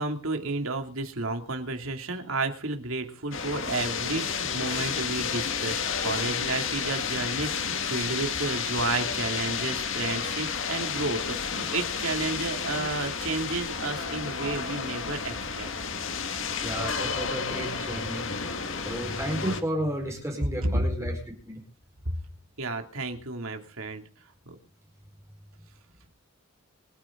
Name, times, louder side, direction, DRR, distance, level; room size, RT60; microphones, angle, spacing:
voice 1, 0.0-15.7 22.6-24.0 24.5-24.6, right 3 dB, 70° right, 5 dB, 2.7 m, -32 dB
sound 1, 3.3-19.6, left 6 dB, 60° left, 2.0 m, -31 dB
voice 2, 16.6-18.3 18.8-21.6, equal, 15° right, 1 dB, 4.7 m, -32 dB
26.5 x 9.9 x 3.9 m, 0.37 s
head